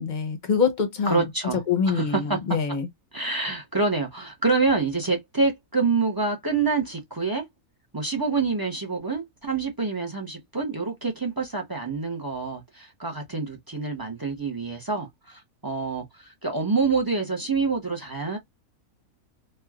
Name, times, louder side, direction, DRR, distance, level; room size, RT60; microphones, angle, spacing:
voice 1, 0.0-1.3 1.7-2.9, left 6 dB, 40° left, 0.7 m, -25 dB
voice 2, 1.1-2.4 3.1-7.4 7.9-18.4, right 4 dB, 25° right, 0.5 m, -27 dB
3.2 x 2.3 x 2.3 m
omnidirectional pair, 1.5 m